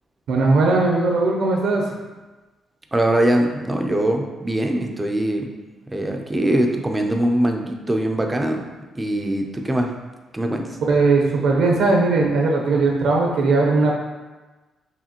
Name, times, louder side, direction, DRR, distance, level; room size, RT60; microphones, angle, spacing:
voice 1, 0.3-1.8 10.9-13.9, right 3 dB, 75° right, 0 dB, 0.7 m, -18 dB
voice 2, 2.9-5.5 5.9-8.6 9.0-9.9 10.3-10.8, right 1 dB, 10° right, 3 dB, 0.4 m, -22 dB
4.8 x 3.0 x 2.9 m, 1.2 s
cardioid pair, 170°, 0 cm